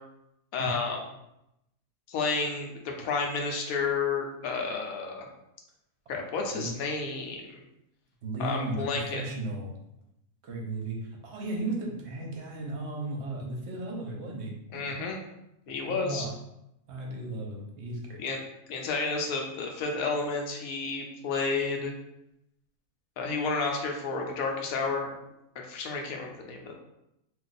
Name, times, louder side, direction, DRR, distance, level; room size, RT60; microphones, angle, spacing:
voice 1, 0.5-1.0 2.1-5.3 6.1-7.6 8.4-9.2 14.7-15.2 15.7-16.3 18.2-18.4 18.7-21.9 23.2-25.1 25.6-26.7, left 4 dB, 75° left, 1 dB, 1.0 m, -31 dB
voice 2, 8.2-9.7 10.4-14.9 15.8-16.3 16.9-18.2, right 2 dB, 60° right, 0 dB, 0.8 m, -35 dB
2.6 x 2.3 x 3.9 m, 0.84 s
omnidirectional pair, 1.5 m